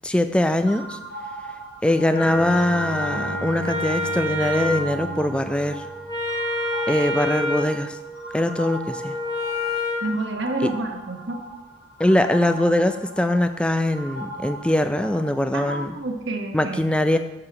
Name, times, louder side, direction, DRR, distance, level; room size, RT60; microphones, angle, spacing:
voice 1, 0.0-1.0 1.8-5.9 6.9-8.0 8.3-9.2 10.6-10.7 12.0-15.9 16.5-17.2, left 1 dB, 5° left, 9 dB, 0.3 m, -22 dB
sound 1, 0.7-15.4, right 2 dB, 50° left, 1.4 m, -39 dB
Wind instrument woodwind instrument, 2.1-10.1, left 1 dB, 20° left, 1.1 m, -29 dB
Bowed string instrument, 2.2-6.5, equal, 70° left, 1.6 m, -35 dB
voice 2, 10.0-11.4 15.5-16.8, right 2 dB, 65° right, 3 dB, 1.1 m, -29 dB
7.6 x 4.9 x 5.8 m, 1.1 s
head